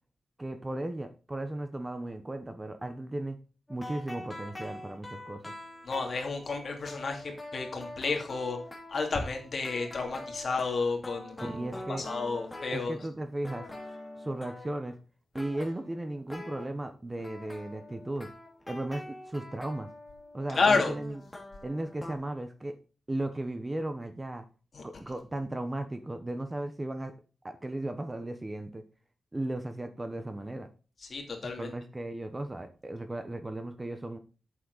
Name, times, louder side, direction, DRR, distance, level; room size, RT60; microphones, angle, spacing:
voice 1, 0.4-3.4 3.7-5.5 11.4-12.0 12.7-13.7 14.2-15.0 15.3-18.3 18.7-19.9 20.3-21.2 21.6-22.7 23.1-24.4 24.8-27.1 27.4-28.8 29.3-30.7 31.6-34.2, right 1 dB, 20° right, 9 dB, 0.9 m, -36 dB
sound 1, 3.7-13.2 13.4-14.9 15.3-16.7 17.2-22.1, left 1 dB, 15° left, 2.8 m, -44 dB
voice 2, 5.9-7.2 7.5-8.6 8.9-11.6 12.0-13.0 20.6-20.9 24.7-24.8 31.1-31.7, left 4 dB, 50° left, 2 dB, 2.8 m, -30 dB
8.3 x 7.5 x 4.0 m, 0.35 s
wide cardioid pair, 105°, 0 cm